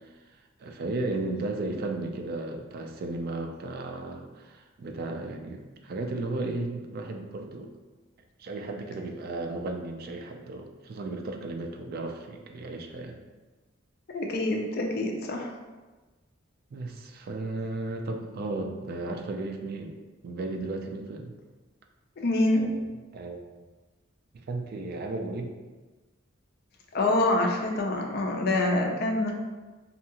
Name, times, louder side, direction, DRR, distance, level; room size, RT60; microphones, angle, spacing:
voice 1, 0.6-7.7 8.4-13.2 16.7-19.9 20.2-21.3 22.6-22.8 23.1-23.4 24.5-25.6, right 2 dB, 50° right, 3 dB, 0.3 m, -34 dB
voice 2, 14.1-15.5 22.2-22.7 26.9-29.3, left 2 dB, 50° left, 1 dB, 0.4 m, -26 dB
2.7 x 2.3 x 2.8 m, 1.2 s
head